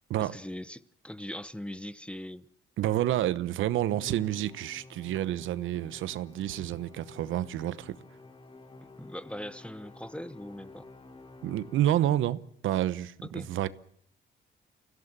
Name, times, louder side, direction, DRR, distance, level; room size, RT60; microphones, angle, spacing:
voice 1, 0.2-2.5 8.8-10.9 13.2-13.5, left 1 dB, 5° left, 0.8 m, -41 dB
voice 2, 2.8-8.0 11.4-13.7, right 12 dB, 80° right, 1.0 m, -29 dB
Musical instrument, 3.9-12.5, left 2 dB, 25° left, 1.8 m, -51 dB
24.5 x 16.5 x 7.4 m
cardioid pair, 90°, 20 cm